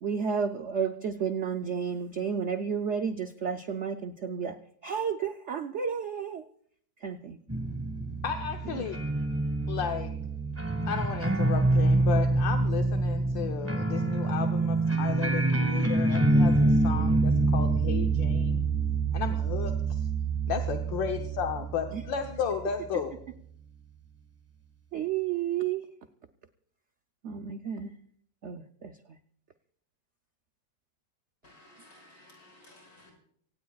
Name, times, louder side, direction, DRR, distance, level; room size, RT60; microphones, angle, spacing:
voice 1, 0.0-4.6 4.8-6.4 7.0-7.4 8.7-8.9 21.9-22.0 24.9-25.8 27.2-27.9 28.4-28.9, right 7 dB, 75° right, 7 dB, 0.6 m, -31 dB
sound 1, 7.5-22.8, right 2 dB, 10° right, 1.2 m, -26 dB
voice 2, 8.2-9.0 9.7-10.1 10.8-18.6 19.1-20.1 20.5-23.1, left 7 dB, 75° left, 4 dB, 1.7 m, -34 dB
voice 3, 31.4-33.1, left 1 dB, 50° left, 0 dB, 7.3 m, -55 dB
25.5 x 17.5 x 2.4 m, 0.63 s
omnidirectional pair, 2.1 m